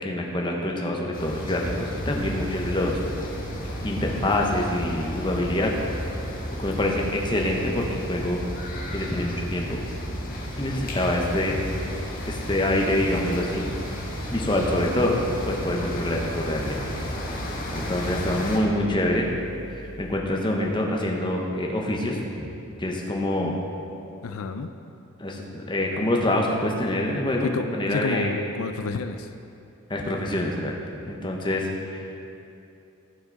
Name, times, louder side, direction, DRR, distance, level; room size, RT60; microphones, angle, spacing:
voice 1, 0.0-3.0 3.8-5.7 6.6-8.4 8.9-9.8 10.6-11.6 12.3-13.6 14.3-15.2 15.5-16.8 17.7-19.3 19.7-22.5 22.8-23.6 25.2-28.3 29.9-30.7 31.0-32.2, left 1 dB, 20° left, 0 dB, 0.9 m, -26 dB
sound 1, 1.1-18.6, equal, 40° left, 1.4 m, -33 dB
sound 2, 2.2-20.2, right 2 dB, 20° right, 0.5 m, -43 dB
voice 2, 24.2-24.7 27.4-29.3, left 4 dB, 85° left, 8 dB, 0.4 m, -30 dB
14.5 x 6.0 x 4.0 m, 2.7 s
head